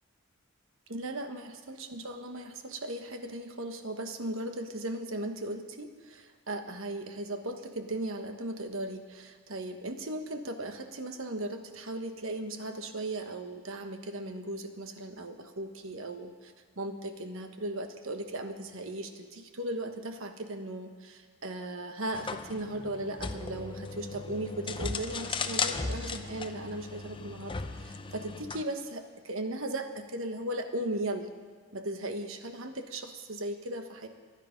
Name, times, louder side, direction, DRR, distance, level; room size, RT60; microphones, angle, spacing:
voice 1, 0.9-31.3 31.7-34.1, right 1 dB, 65° right, 6 dB, 1.3 m, -37 dB
sound 1, 22.1-28.6, left 4 dB, 25° left, 0.6 m, -36 dB
23.5 x 9.8 x 5.2 m, 1.6 s
head